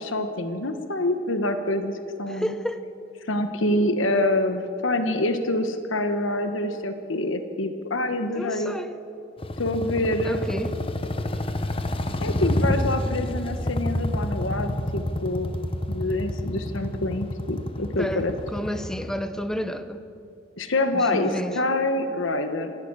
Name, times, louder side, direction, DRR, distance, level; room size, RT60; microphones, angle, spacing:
voice 1, 0.0-1.9 2.2-2.5 3.3-8.8 9.6-10.4 12.2-15.5 15.9-18.3 20.6-22.7, left 1 dB, 85° left, 7 dB, 1.3 m, -26 dB
voice 2, 2.3-2.8 8.3-9.0 10.2-10.8 17.8-20.0 20.9-21.6, equal, 5° left, 10 dB, 0.7 m, -31 dB
sound 1, 9.4-19.1, left 1 dB, 30° left, 0.9 m, -28 dB
27.0 x 11.0 x 9.0 m, 2.6 s
head